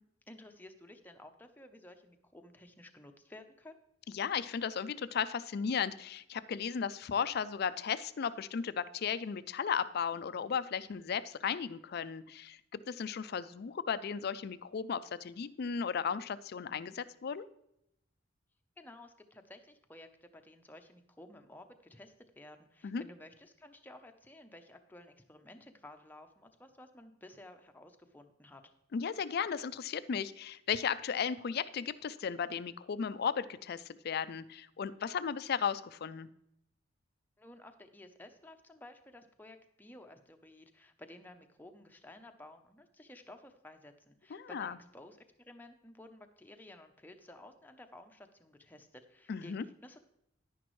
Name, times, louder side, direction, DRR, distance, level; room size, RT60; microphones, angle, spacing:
voice 1, 0.3-3.8 18.8-28.6 37.4-50.0, left 1 dB, 10° left, 5 dB, 0.6 m, -54 dB
voice 2, 4.1-17.5 22.8-23.0 28.9-36.3 44.3-44.8 49.3-49.6, left 7 dB, 50° left, 15 dB, 0.4 m, -35 dB
10.5 x 10.0 x 3.1 m, 0.80 s
head